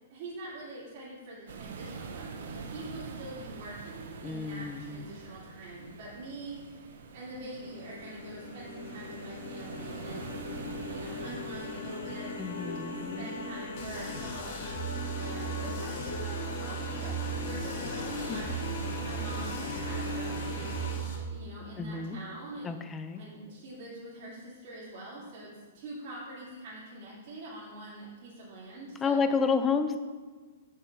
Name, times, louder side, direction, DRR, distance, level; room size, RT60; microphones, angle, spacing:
voice 1, 0.0-10.4 10.9-12.4 13.1-14.6 15.1-22.7 23.1-29.2, right 1 dB, 40° right, -10 dB, 2.8 m, -44 dB
sound 1, 1.5-20.8, right 5 dB, 65° right, 0.9 m, -45 dB
voice 2, 4.2-5.0 12.4-13.3 18.3-18.4 21.8-22.2 22.6-23.2 29.0-30.0, left 5 dB, 10° left, 8 dB, 0.4 m, -30 dB
sound 2, 7.6-21.0, left 3 dB, 65° left, 1.3 m, -40 dB
sound 3, 13.8-21.1, right 5 dB, 40° left, 2.2 m, -37 dB
7.0 x 5.7 x 6.0 m, 1.4 s
hypercardioid pair, 170°, 0 cm